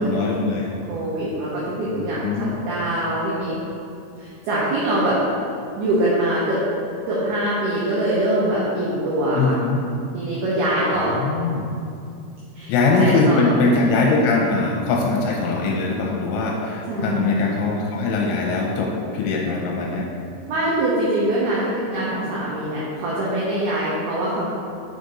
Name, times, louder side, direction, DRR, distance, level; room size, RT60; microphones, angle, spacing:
voice 1, 0.0-0.7 1.9-2.5 9.3-9.8 11.1-11.6 12.7-20.1, left 3 dB, 80° left, -2 dB, 3.0 m, -21 dB
voice 2, 0.9-2.2 2.7-3.5 4.2-5.2 5.8-6.6 7.1-9.6 10.1-11.1 12.5-13.5 16.9-17.4 20.5-24.5, right 1 dB, 90° right, -7 dB, 2.2 m, -23 dB
6.5 x 5.1 x 4.1 m, 2.5 s
omnidirectional pair, 6.0 m